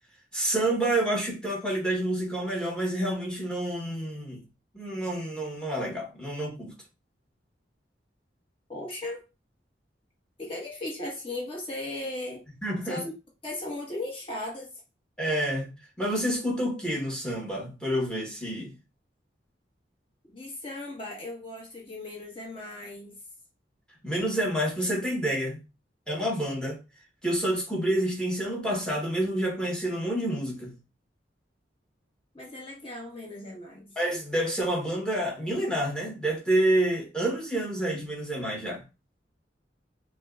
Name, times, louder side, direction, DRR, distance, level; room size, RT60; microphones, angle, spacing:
voice 1, 0.3-4.4 4.7-6.7 12.6-13.0 15.2-15.7 16.0-18.7 24.0-25.6 26.1-26.8 27.2-30.7 34.0-38.8, right 1 dB, 5° left, 1.1 m, -28 dB
voice 2, 8.7-9.2 10.4-12.4 12.8-13.1 13.4-14.7 20.3-23.2 32.3-33.9, left 2 dB, 30° left, 1.2 m, -37 dB
5.5 x 2.2 x 2.4 m
head